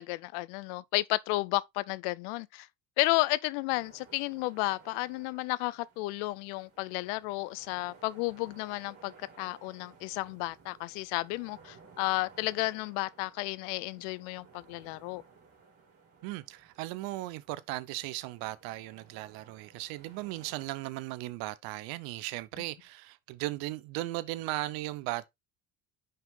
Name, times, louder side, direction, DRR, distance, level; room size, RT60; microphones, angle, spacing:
voice 1, 0.0-2.7 3.0-15.2, left 21 dB, 90° left, 0.5 m, -32 dB
sound 1, 3.7-20.7, right 5 dB, 40° right, 3.6 m, -58 dB
voice 2, 16.2-25.3, right 17 dB, 80° right, 0.8 m, -37 dB
5.6 x 5.3 x 3.6 m
supercardioid pair, 85°, 36 cm